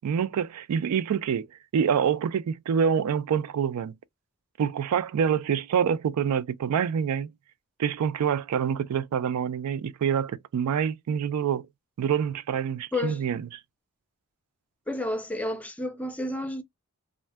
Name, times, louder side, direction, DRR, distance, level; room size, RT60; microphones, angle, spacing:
voice 1, 0.0-1.5 1.7-3.9 4.6-7.3 7.8-11.7 12.0-13.4, right 7 dB, 85° right, 0.3 m, -26 dB
voice 2, 12.9-13.2 14.9-16.6, left 2 dB, 5° left, 0.4 m, -30 dB
2.5 x 2.1 x 3.2 m
head